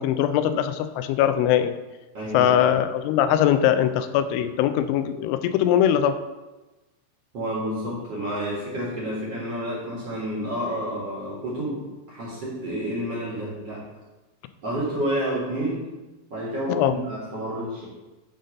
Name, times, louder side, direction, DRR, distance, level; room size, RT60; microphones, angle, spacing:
voice 1, 0.0-1.7 2.3-6.2 16.7-17.0, left 10 dB, 85° left, 10 dB, 3.0 m, -21 dB
voice 2, 2.1-2.6 7.3-13.9 14.6-15.8 16.3-17.9, right 1 dB, 55° right, -6 dB, 1.8 m, -29 dB
10.5 x 3.9 x 5.2 m, 1.1 s
omnidirectional pair, 5.4 m